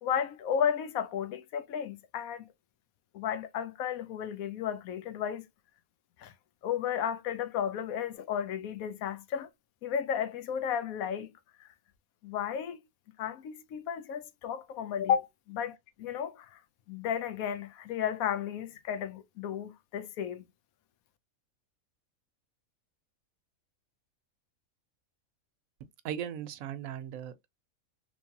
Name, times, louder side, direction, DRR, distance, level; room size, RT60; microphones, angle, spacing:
voice 1, 0.0-2.5 3.1-5.5 6.2-6.3 6.6-9.5 9.8-11.3 12.2-12.8 13.2-16.6 16.9-20.5, left 8 dB, 85° left, 1.1 m, -33 dB
voice 2, 26.0-27.5, right 9 dB, 80° right, 1.0 m, -38 dB
3.2 x 3.1 x 2.7 m
omnidirectional pair, 1.5 m